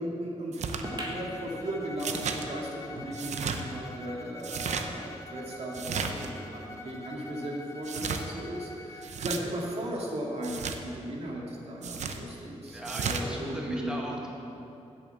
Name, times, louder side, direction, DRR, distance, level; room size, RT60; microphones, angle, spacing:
voice 1, 0.0-14.2, right 1 dB, 60° right, -3 dB, 2.1 m, -36 dB
sound 1, 0.5-0.8 2.0-2.4 3.1-3.6 4.4-4.9 5.7-6.3 7.8-8.2 9.0-9.4 10.4-10.8 11.8-12.2 12.8-13.2, right 6 dB, 75° right, 0.7 m, -33 dB
Bowed string instrument, 0.8-9.1, left 2 dB, 25° left, 1.1 m, -45 dB
sound 2, 0.8-3.8 4.2-4.3 4.5-4.6 5.4-5.5, right 1 dB, 35° right, 1.5 m, -42 dB
voice 2, 12.7-14.3, equal, 5° right, -2 dB, 1.6 m, -38 dB
8.1 x 7.0 x 8.2 m, 2.8 s
cardioid pair, 75°, 12 cm